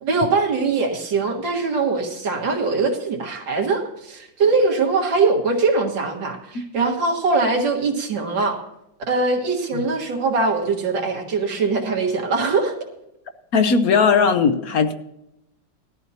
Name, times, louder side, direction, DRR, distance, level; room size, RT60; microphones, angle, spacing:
voice 1, 0.0-8.6 9.1-12.7, right 4 dB, 90° right, 2 dB, 2.4 m, -22 dB
voice 2, 13.5-14.9, left 5 dB, 60° left, 7 dB, 1.2 m, -18 dB
19.5 x 13.0 x 2.8 m, 0.85 s
omnidirectional pair, 1.9 m